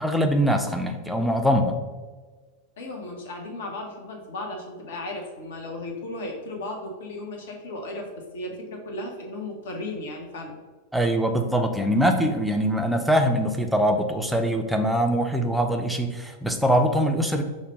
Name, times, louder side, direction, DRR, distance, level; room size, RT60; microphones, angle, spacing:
voice 1, 0.0-1.8 10.9-17.4, equal, ahead, 4 dB, 0.5 m, -23 dB
voice 2, 2.8-10.5, left 2 dB, 60° left, 2 dB, 0.8 m, -35 dB
5.1 x 2.2 x 4.0 m, 1.3 s
figure-of-eight pair, 90°, 0 cm